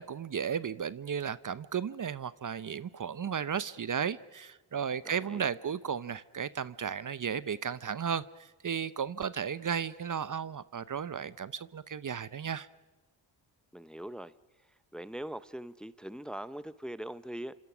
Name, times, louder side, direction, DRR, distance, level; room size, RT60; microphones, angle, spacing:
voice 1, 0.0-12.7, right 7 dB, 40° right, 0.8 m, -34 dB
voice 2, 5.1-5.5 13.7-14.3 14.9-17.6, right 1 dB, ahead, 0.9 m, -41 dB
28.0 x 26.5 x 6.2 m
supercardioid pair, 50°, 48 cm